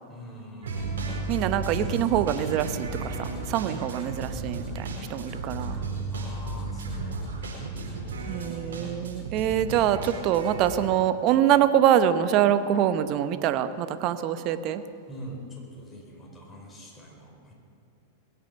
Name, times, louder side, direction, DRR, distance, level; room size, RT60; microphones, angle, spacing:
voice 1, 0.1-1.2 3.8-4.3 6.1-7.6 15.1-17.5, equal, 15° left, -1 dB, 4.8 m, -44 dB
sound 1, 0.6-10.7, right 3 dB, 80° right, 4.6 m, -34 dB
voice 2, 1.3-5.7 8.3-14.8, right 10 dB, 45° right, 11 dB, 0.9 m, -24 dB
21.0 x 8.8 x 7.0 m, 2.6 s
hypercardioid pair, 105°, 0 cm